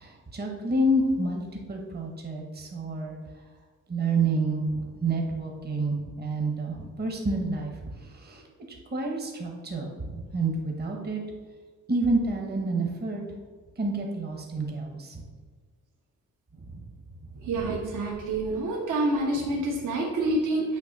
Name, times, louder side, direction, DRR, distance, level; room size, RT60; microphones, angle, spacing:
voice 1, 0.0-1.4 1.7-3.2 3.9-7.7 8.0-8.4 8.9-11.2 11.9-13.2 13.8-15.2 16.7-16.8 17.4-17.5, right 2 dB, 30° right, 1 dB, 1.0 m, -28 dB
voice 2, 17.5-20.8, right 2 dB, 70° right, -2 dB, 1.3 m, -27 dB
9.1 x 3.1 x 5.2 m, 1.5 s
wide cardioid pair, 165°, 32 cm